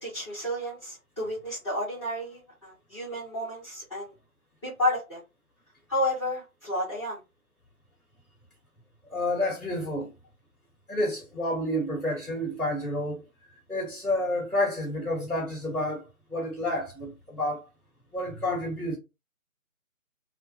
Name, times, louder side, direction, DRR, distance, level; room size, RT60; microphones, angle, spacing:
voice 1, 0.0-4.1 4.6-5.2 5.9-7.2, left 1 dB, 20° left, 0.9 m, -31 dB
voice 2, 9.1-10.1 10.9-13.2 13.7-17.6 18.1-19.0, left 1 dB, ahead, 1.2 m, -29 dB
2.6 x 2.1 x 3.1 m
figure-of-eight pair, 155°, 43 cm